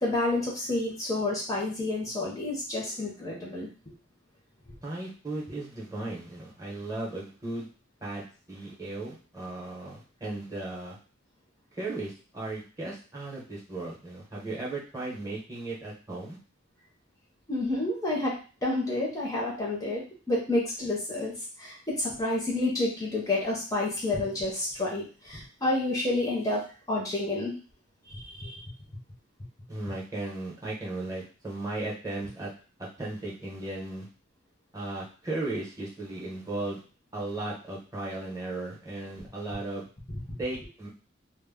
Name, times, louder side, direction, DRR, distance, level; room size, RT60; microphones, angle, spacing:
voice 1, 0.0-3.7 17.5-26.6 26.9-27.5 28.1-28.6 40.1-40.2, left 2 dB, 15° left, -3 dB, 0.6 m, -29 dB
voice 2, 4.8-7.7 8.0-11.0 11.7-16.4 29.7-32.5 32.8-34.1 34.7-36.8 37.1-39.8 40.4-40.9, right 2 dB, 15° right, -4 dB, 0.7 m, -36 dB
2.1 x 2.0 x 3.4 m, 0.36 s
head